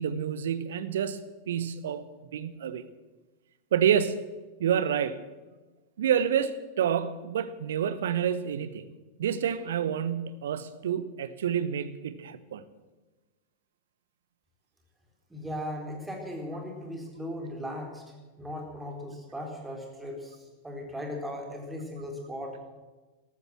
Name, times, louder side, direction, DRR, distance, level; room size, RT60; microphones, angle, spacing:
voice 1, 0.0-2.0 2.3-2.9 3.7-4.3 4.6-5.2 6.0-8.9 9.2-12.6, right 8 dB, 60° right, 1.0 m, -28 dB
voice 2, 15.3-18.0 18.4-20.4 20.6-22.6, equal, 10° right, 4.0 m, -37 dB
13.5 x 13.0 x 7.6 m
figure-of-eight pair, 90°, 0 cm